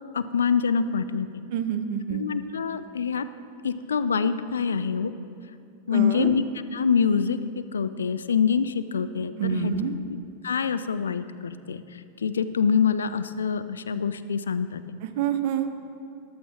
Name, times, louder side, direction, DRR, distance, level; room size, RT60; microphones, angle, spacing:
voice 1, 0.1-1.3 2.1-3.3 3.6-5.1 5.9-6.4 6.7-9.7 10.4-11.8 12.2-14.8, left 6 dB, 70° left, 12 dB, 0.4 m, -25 dB
voice 2, 1.5-2.2 5.9-6.3 9.4-9.9 15.0-15.7, right 9 dB, 50° right, 9 dB, 0.7 m, -27 dB
14.5 x 11.0 x 2.9 m, 2.6 s
figure-of-eight pair, 90°, 0 cm